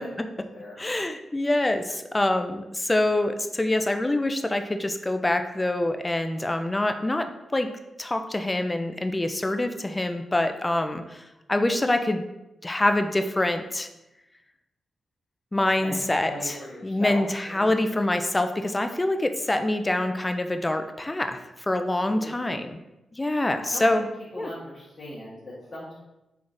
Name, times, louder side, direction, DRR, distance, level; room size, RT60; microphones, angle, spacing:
voice 1, 0.0-0.8 15.8-17.2 17.4-17.8 22.1-22.6 23.6-24.0 24.3-26.0, left 1 dB, 40° left, -10 dB, 1.4 m, -39 dB
voice 2, 0.8-7.3 7.5-7.7 8.0-12.2 12.6-13.9 15.5-16.5 16.8-22.8 23.2-24.1 24.4-24.5, left 1 dB, 20° left, 7 dB, 0.4 m, -25 dB
3.6 x 3.4 x 2.6 m, 0.94 s
supercardioid pair, 50°, 0 cm